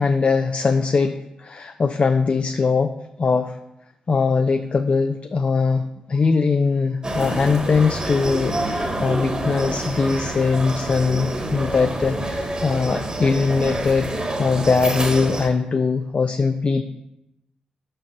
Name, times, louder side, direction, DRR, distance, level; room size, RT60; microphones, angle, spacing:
voice 1, 0.0-3.6 4.1-14.1 14.4-16.8, left 4 dB, 45° left, 8 dB, 0.5 m, -21 dB
sound 1, 7.0-15.5, right 1 dB, 30° right, 1.4 m, -27 dB
5.6 x 5.1 x 5.7 m, 0.89 s
supercardioid pair, 45°, 3 cm